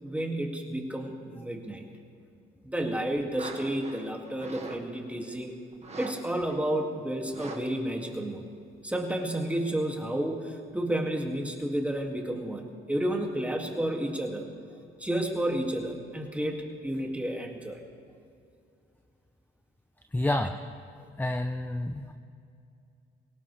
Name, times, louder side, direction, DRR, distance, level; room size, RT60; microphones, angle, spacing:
voice 1, 0.0-1.8 2.6-5.5 6.0-8.4 8.8-14.6 15.0-17.8, right 1 dB, 5° right, 1 dB, 2.3 m, -31 dB
sound 1, 3.4-4.8 5.1-5.3 5.7-6.1 6.5-6.6 7.3-7.6 7.9-8.0, right 3 dB, 35° right, 1.9 m, -41 dB
voice 2, 20.1-20.7 21.2-22.1, left 1 dB, 10° left, 7 dB, 0.7 m, -29 dB
23.0 x 18.0 x 3.4 m, 2.5 s
cardioid pair, 90°, 20 cm